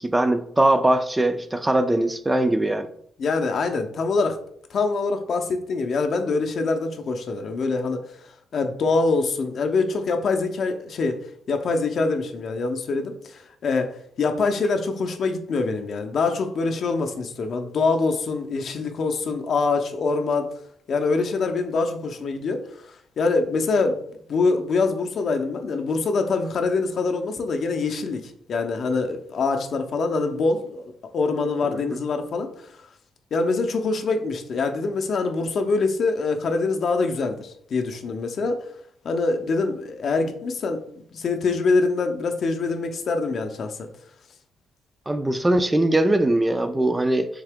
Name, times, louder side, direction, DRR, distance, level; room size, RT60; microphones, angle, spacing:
voice 1, 0.0-2.9 31.7-32.0 45.1-47.3, right 1 dB, 15° right, 9 dB, 0.3 m, -21 dB
voice 2, 3.2-4.4 4.7-8.0 8.5-11.2 11.5-20.6 20.9-22.6 23.2-24.0 24.3-32.5 33.3-38.6 39.0-40.8 41.1-43.9, left 3 dB, 55° left, 5 dB, 0.5 m, -24 dB
3.6 x 2.8 x 3.4 m, 0.66 s
cardioid pair, 90°, 0 cm